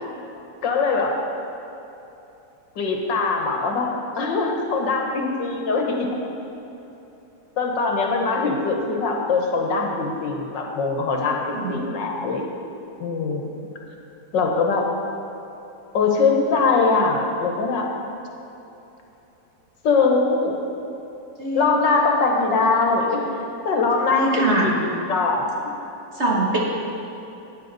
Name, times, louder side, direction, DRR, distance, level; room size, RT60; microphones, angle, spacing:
voice 1, 0.6-1.2 2.8-3.9 4.2-6.1 7.6-12.4 13.0-13.5 14.3-14.9 15.9-17.9 19.8-20.6 21.5-23.2 23.7-25.5, left 4 dB, 80° left, 1 dB, 1.9 m, -22 dB
voice 2, 24.1-24.7 26.2-26.6, right 2 dB, 40° right, -2 dB, 1.6 m, -22 dB
13.0 x 9.7 x 4.1 m, 3.0 s
omnidirectional pair, 2.0 m